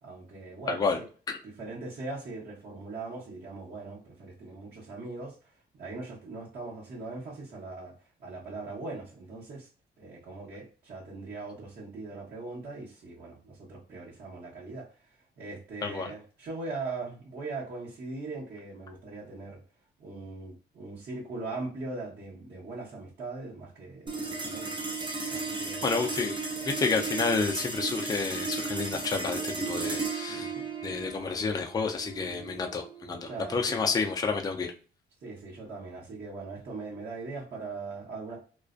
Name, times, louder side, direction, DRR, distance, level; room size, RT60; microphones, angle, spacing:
voice 1, 0.0-1.1 1.4-5.3 5.8-7.9 8.2-9.7 10.0-14.9 15.4-19.6 20.0-24.7 25.3-26.0 30.3-30.7 33.2-33.8 35.2-38.4, right 3 dB, 60° right, -8 dB, 1.0 m, -40 dB
voice 2, 0.7-1.0 1.3-1.4 15.8-16.1 25.8-30.5 30.8-34.7, left 4 dB, 20° left, 3 dB, 0.4 m, -30 dB
sound 1, 24.1-34.7, right 3 dB, 25° right, 0.6 m, -35 dB
2.4 x 2.1 x 2.4 m, 0.37 s
cardioid pair, 85°, 18 cm